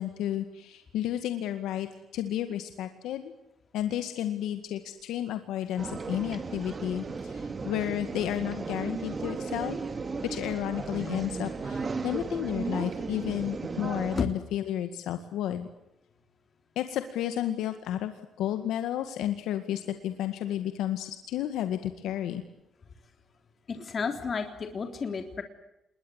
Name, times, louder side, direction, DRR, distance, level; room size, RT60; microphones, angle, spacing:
voice 1, 0.0-3.3 3.7-9.8 10.2-15.7 16.8-18.1 18.4-22.4, left 11 dB, 85° left, 8 dB, 1.9 m, -32 dB
sound 1, 5.8-14.2, right 4 dB, 35° right, 2.1 m, -35 dB
voice 2, 23.7-25.4, left 5 dB, 45° left, 5 dB, 3.5 m, -31 dB
27.5 x 22.0 x 8.2 m, 0.87 s
cardioid pair, 90°, 0 cm